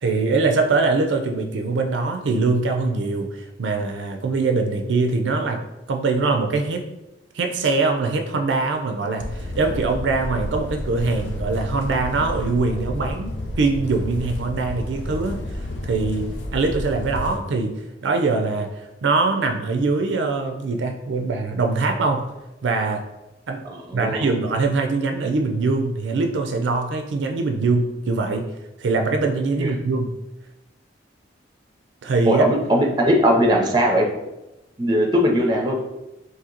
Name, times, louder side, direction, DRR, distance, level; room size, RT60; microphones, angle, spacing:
voice 1, 0.0-3.3 3.6-5.6 5.9-6.9 7.3-9.2 9.5-15.4 15.8-16.3 16.5-18.7 19.0-22.3 22.6-23.0 23.5-23.6 23.9-28.5 28.8-30.1 32.0-32.4, right 3 dB, 80° right, 5 dB, 0.4 m, -22 dB
sound 1, 9.2-17.4, left 1 dB, 80° left, 0.5 m, -31 dB
voice 2, 23.6-24.3 29.6-29.7 32.3-34.1 34.8-35.8, equal, 25° right, 1 dB, 0.5 m, -19 dB
2.8 x 2.7 x 3.8 m, 0.95 s
head